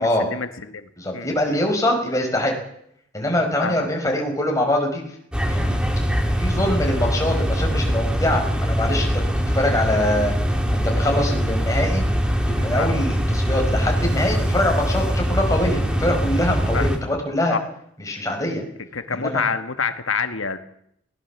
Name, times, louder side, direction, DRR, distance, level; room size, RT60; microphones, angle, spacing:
voice 1, 0.0-1.3 3.6-3.9 12.8-12.9 16.7-16.9 17.5-17.6 18.9-20.6, left 5 dB, 85° left, 9 dB, 1.5 m, -27 dB
voice 2, 1.0-2.5 3.1-5.0 5.4-5.8 6.4-10.3 10.7-12.0 12.4-17.6 18.0-18.6 19.1-19.4, left 1 dB, 15° left, 1 dB, 5.2 m, -23 dB
sound 1, 5.3-17.0, equal, 5° right, 2.4 m, -22 dB
21.5 x 18.0 x 7.2 m, 0.72 s
head